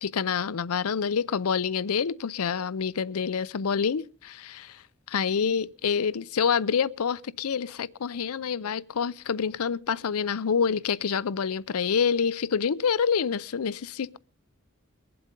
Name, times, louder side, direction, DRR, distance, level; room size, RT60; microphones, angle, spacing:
voice 1, 0.0-4.8 5.1-14.2, left 6 dB, 85° left, 0.6 m, -27 dB
22.5 x 7.8 x 5.2 m
head